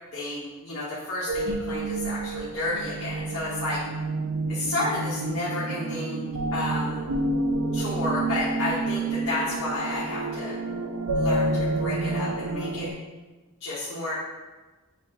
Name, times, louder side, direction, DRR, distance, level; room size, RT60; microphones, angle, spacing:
voice 1, 0.1-3.8 4.5-6.2 6.5-7.1 7.7-10.5 11.1-12.9 13.6-14.1, left 2 dB, 65° left, -9 dB, 1.0 m, -31 dB
sound 1, 1.3-12.9, right 2 dB, 60° right, 0.4 m, -29 dB
7.1 x 2.4 x 2.9 m, 1.2 s
head